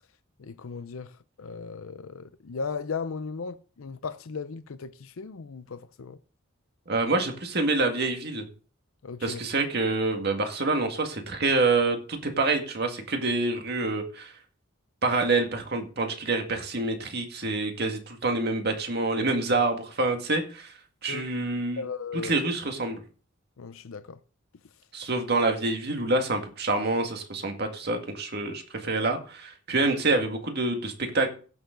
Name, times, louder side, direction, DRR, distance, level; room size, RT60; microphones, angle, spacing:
voice 1, 0.4-6.2 9.0-9.4 21.1-21.2 21.8-22.3 23.6-24.2, left 5 dB, 85° left, 0.6 m, -36 dB
voice 2, 6.9-8.5 9.2-14.3 15.0-21.8 22.1-23.0 24.9-31.3, right 3 dB, 50° right, 1.9 m, -27 dB
15.5 x 6.9 x 3.9 m
head